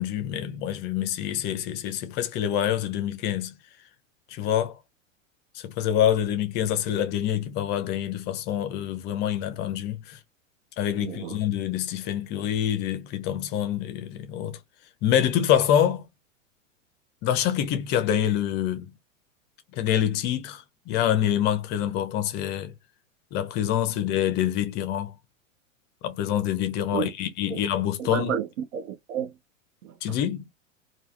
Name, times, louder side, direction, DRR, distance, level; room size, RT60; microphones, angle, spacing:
voice 1, 0.0-3.5 4.3-4.7 5.6-10.2 10.8-14.6 15.0-16.0 17.2-18.9 19.8-22.7 23.3-25.1 26.0-28.3 30.0-30.5, left 10 dB, 30° left, 0.4 m, -26 dB
voice 2, 11.0-11.4 26.9-27.1 27.5-27.6 28.0-29.3 29.8-30.2, right 8 dB, 75° right, 0.5 m, -31 dB
3.2 x 2.3 x 2.3 m
hypercardioid pair, 105°, 39 cm